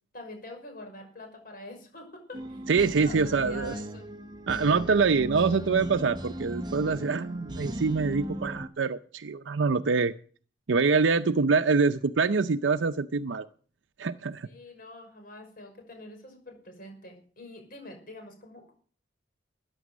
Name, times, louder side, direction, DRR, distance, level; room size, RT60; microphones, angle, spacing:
voice 1, 0.1-4.1 14.4-18.7, left 1 dB, 50° left, 4 dB, 5.7 m, -46 dB
sound 1, 2.3-8.7, right 1 dB, 25° right, 0.9 m, -37 dB
voice 2, 2.7-3.7 4.5-10.1 10.7-13.5 14.0-14.5, right 4 dB, 80° right, 10 dB, 0.6 m, -25 dB
14.0 x 10.0 x 6.2 m, 0.44 s
head